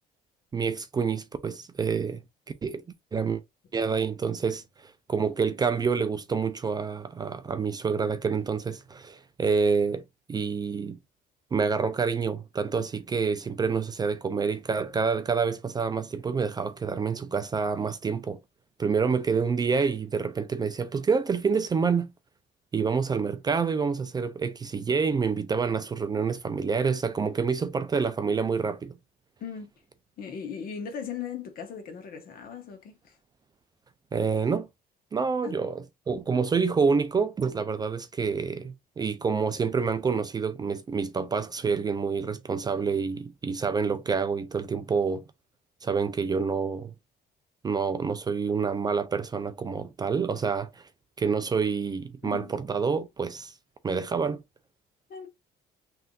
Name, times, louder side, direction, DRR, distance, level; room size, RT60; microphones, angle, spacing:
voice 1, 0.5-2.2 2.6-2.8 3.1-3.4 3.7-10.0 10.3-11.0 11.5-18.4 18.8-22.1 22.7-29.0 34.1-34.7 35.1-45.2 45.8-46.9 47.6-50.9 51.2-53.5 53.8-54.4, right 5 dB, 25° right, 0.4 m, -27 dB
voice 2, 29.4-29.7 30.2-33.2 35.4-35.7 52.2-52.5 55.1-55.3, left 7 dB, 60° left, 1.1 m, -38 dB
3.4 x 2.6 x 2.3 m
cardioid pair, 110°, 17 cm